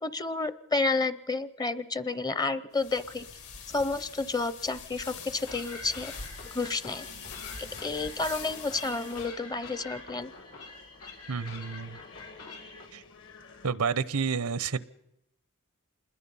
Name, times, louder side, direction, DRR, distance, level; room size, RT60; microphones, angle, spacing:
voice 1, 0.0-3.3 3.7-6.1 6.5-7.1 7.8-10.3, left 3 dB, 15° left, 15 dB, 0.7 m, -30 dB
sound 1, 2.7-9.3, left 5 dB, 75° left, 5.8 m, -44 dB
sound 2, 5.1-13.7, left 3 dB, 60° left, 1.8 m, -52 dB
sound 3, 5.5-12.9, left 3 dB, 90° left, 5.4 m, -46 dB
voice 2, 11.3-12.0 12.9-13.0 13.6-14.8, right 5 dB, 85° right, 17 dB, 0.8 m, -30 dB
27.0 x 21.0 x 5.6 m, 0.84 s
head